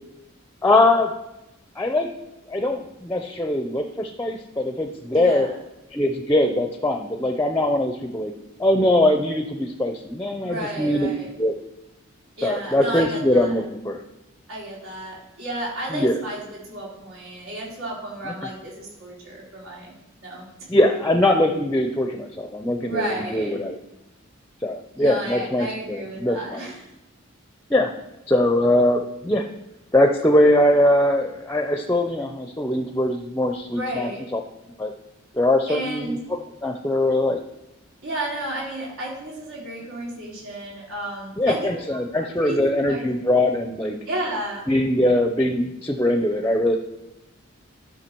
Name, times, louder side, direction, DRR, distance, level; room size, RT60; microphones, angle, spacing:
voice 1, 0.6-1.1 1.8-2.1 2.5-5.5 5.9-8.3 8.6-11.1 11.4-11.5 12.4-14.0 15.9-16.2 18.2-18.3 20.7-23.8 24.6-26.7 27.7-27.9 28.3-29.4 29.9-34.4 34.8-34.9 35.3-37.4 41.4-44.0 44.7-46.8, left 1 dB, 10° left, 5 dB, 0.5 m, -21 dB
voice 2, 5.1-5.5 10.4-11.3 12.4-13.6 14.5-19.9 20.2-20.7 22.8-23.7 25.0-26.9 33.7-34.3 35.7-36.2 38.0-41.8 42.4-43.0 43.3-43.4 44.1-44.7, right 1 dB, 85° right, -4 dB, 3.3 m, -32 dB
13.0 x 5.7 x 4.5 m, 0.95 s
head